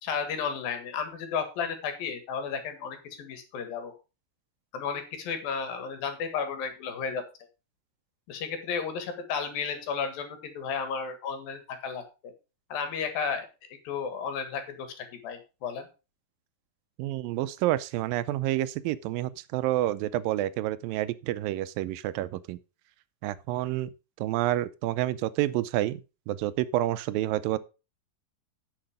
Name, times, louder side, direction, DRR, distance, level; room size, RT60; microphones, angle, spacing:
voice 1, 0.0-3.9 4.7-7.2 8.3-12.3 12.7-13.5 13.9-15.9, left 6 dB, 85° left, 3.6 m, -33 dB
voice 2, 17.0-22.6 23.2-23.9 24.2-26.0 26.3-27.6, right 14 dB, 85° right, 2.4 m, -29 dB
10.5 x 6.8 x 5.0 m
omnidirectional pair, 4.0 m